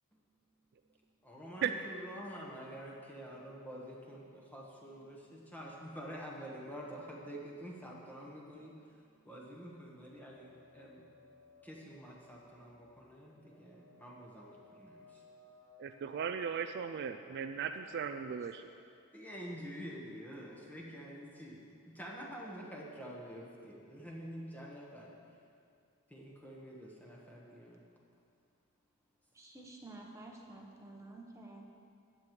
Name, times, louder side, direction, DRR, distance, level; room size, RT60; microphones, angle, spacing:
voice 1, 1.2-9.0 9.2-11.1 11.6-15.2 19.1-25.1 26.1-27.8, equal, 10° left, -3 dB, 1.3 m, -48 dB
sound 1, 10.1-19.3, left 2 dB, 45° left, 2.1 m, -63 dB
voice 2, 15.8-18.6, right 7 dB, 50° right, 8 dB, 0.3 m, -37 dB
voice 3, 29.3-31.7, right 2 dB, 15° right, -1 dB, 1.0 m, -51 dB
14.5 x 9.1 x 3.2 m, 2.4 s
head